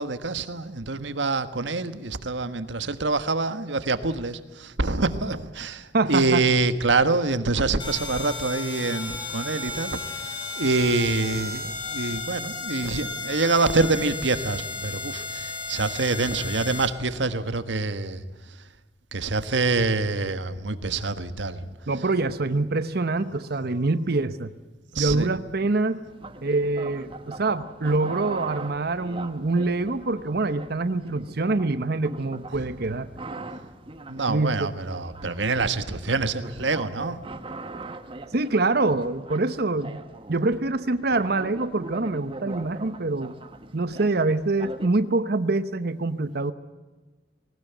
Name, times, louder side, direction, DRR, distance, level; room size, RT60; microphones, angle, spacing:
voice 1, 0.0-10.0 10.6-18.2 19.1-21.6 24.9-25.3 34.1-37.2, right 3 dB, 85° right, 11 dB, 1.4 m, -26 dB
voice 2, 5.9-6.5 21.9-24.5 25.0-26.0 26.4-33.1 34.3-34.7 38.3-40.0 40.3-43.3 43.7-46.5, right 3 dB, 60° right, 12 dB, 0.9 m, -25 dB
sound 1, 7.8-16.9, left 3 dB, 30° left, 3.6 m, -34 dB
sound 2, 26.1-44.9, right 2 dB, 30° right, 1.3 m, -41 dB
19.5 x 19.0 x 9.2 m, 1.2 s
head